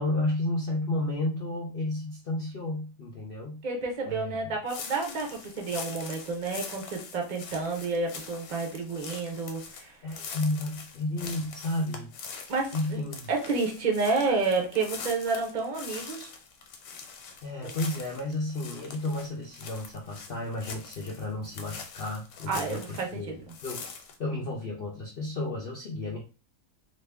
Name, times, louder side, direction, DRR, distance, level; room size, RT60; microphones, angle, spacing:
voice 1, 0.0-3.6 4.1-4.5 10.0-12.1 12.7-13.3 17.4-23.8 24.2-26.2, left 2 dB, 65° left, -2 dB, 0.5 m, -32 dB
voice 2, 3.6-10.0 12.5-13.0 13.3-16.3 17.6-17.7 22.5-23.6, right 4 dB, 45° right, 2 dB, 0.5 m, -30 dB
sound 1, 4.7-23.2 23.5-24.2, left 5 dB, 85° left, 1.3 m, -43 dB
2.9 x 2.5 x 3.4 m, 0.34 s
omnidirectional pair, 1.8 m